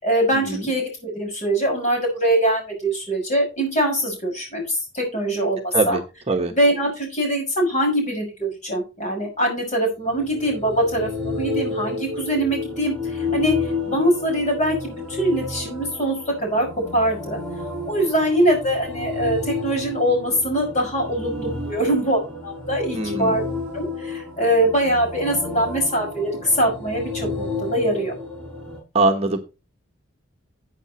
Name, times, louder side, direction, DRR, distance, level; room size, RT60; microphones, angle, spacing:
voice 1, 0.0-6.0 6.5-16.7 16.9-17.4 17.9-23.5 23.7-28.1, right 1 dB, 35° left, 1 dB, 6.4 m, -23 dB
sound 1, 10.0-28.8, left 3 dB, 5° left, 7.6 m, -31 dB
voice 2, 22.9-23.3 28.9-29.4, right 3 dB, 30° right, 3 dB, 1.2 m, -21 dB
14.5 x 8.5 x 3.1 m, 0.29 s
head